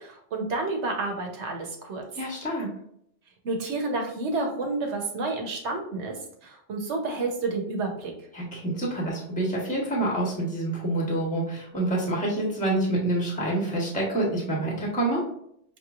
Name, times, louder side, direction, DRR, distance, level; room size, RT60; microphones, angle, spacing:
voice 1, 0.0-2.0 3.4-8.1, right 3 dB, 75° right, 2 dB, 1.2 m, -30 dB
voice 2, 2.1-2.7 8.3-15.2, right 1 dB, 5° left, -3 dB, 1.1 m, -27 dB
5.8 x 3.0 x 2.4 m, 0.71 s
omnidirectional pair, 1.2 m